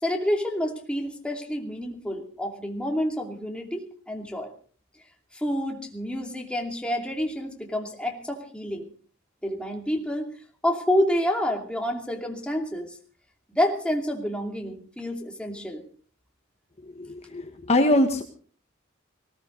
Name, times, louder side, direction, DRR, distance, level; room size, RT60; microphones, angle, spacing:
voice 1, 0.0-4.5 5.3-8.9 9.4-10.3 10.6-13.0 13.5-15.8, equal, 5° left, 2 dB, 2.8 m, -28 dB
voice 2, 16.8-18.2, left 1 dB, 30° left, 5 dB, 1.5 m, -23 dB
19.5 x 18.0 x 3.9 m, 0.42 s
head